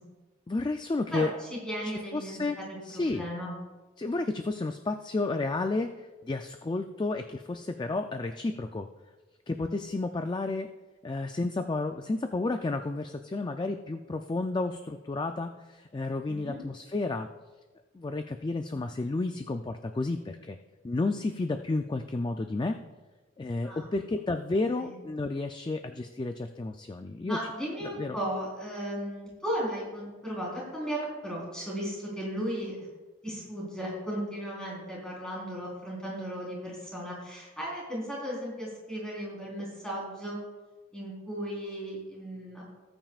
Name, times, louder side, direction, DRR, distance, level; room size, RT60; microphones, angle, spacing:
voice 1, 0.5-1.3 1.8-2.6 2.8-3.2 4.0-8.9 9.5-10.7 11.0-17.3 17.9-20.6 20.8-22.8 23.4-27.4 28.0-28.2, left 2 dB, 20° left, 7 dB, 0.3 m, -31 dB
voice 2, 1.1-3.5 16.3-16.6 23.6-23.9 24.8-25.0 27.2-32.9 33.2-40.4 40.9-42.8, equal, 5° left, -5 dB, 4.0 m, -36 dB
18.5 x 8.9 x 2.4 m, 1.2 s
head